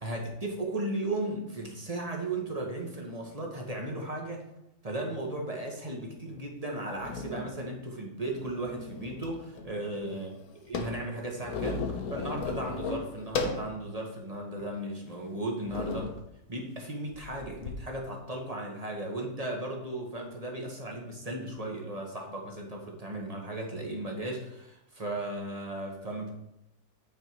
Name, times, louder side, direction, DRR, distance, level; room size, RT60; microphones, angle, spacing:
voice 1, 0.0-4.4 4.8-10.4 10.7-16.1 16.5-26.3, right 1 dB, 25° right, 0 dB, 1.1 m, -36 dB
sound 1, 6.3-6.4 7.0-7.6 8.2-9.3 9.6-9.7 9.9-13.7 14.2-14.3 15.0-15.2 15.6-16.2 17.1-17.7, left 4 dB, 60° left, 1.2 m, -35 dB
8.9 x 4.5 x 4.6 m, 0.85 s
omnidirectional pair, 2.0 m